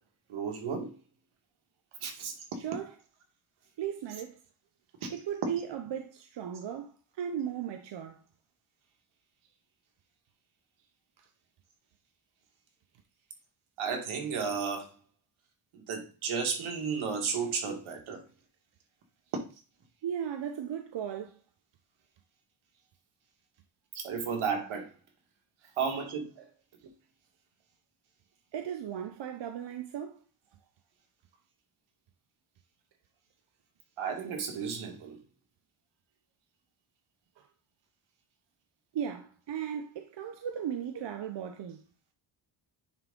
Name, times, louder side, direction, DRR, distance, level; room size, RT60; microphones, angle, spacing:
voice 1, 0.3-0.9 2.0-2.3 5.0-5.1 13.8-14.9 15.7-18.2 23.9-24.9 25.8-26.3 34.0-35.2, right 6 dB, 75° right, 1.9 m, -33 dB
voice 2, 2.6-2.9 3.8-4.4 5.1-6.9 7.2-8.2 20.0-21.3 25.6-25.7 26.4-26.5 28.5-30.2 38.9-41.8, right 9 dB, 60° right, 0.8 m, -36 dB
9.5 x 3.6 x 3.7 m
cardioid pair, 90°, 49 cm